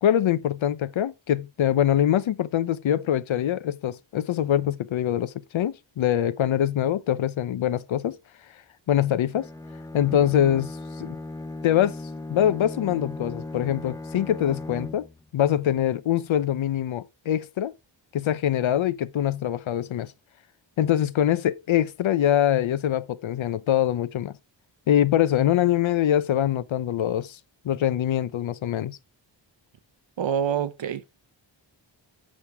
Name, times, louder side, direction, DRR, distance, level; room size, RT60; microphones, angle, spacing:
voice 1, 0.0-8.2 8.9-9.5 9.9-11.2 11.6-12.0 12.3-15.1 15.3-17.7 18.1-20.1 20.8-24.3 24.9-27.4 27.6-29.0, left 11 dB, 85° left, 0.7 m, -24 dB
Bowed string instrument, 9.3-15.3, left 2 dB, 10° left, 0.5 m, -37 dB
voice 2, 30.2-31.1, right 8 dB, 70° right, 0.9 m, -27 dB
7.5 x 6.5 x 3.4 m
wide cardioid pair, 165°, 46 cm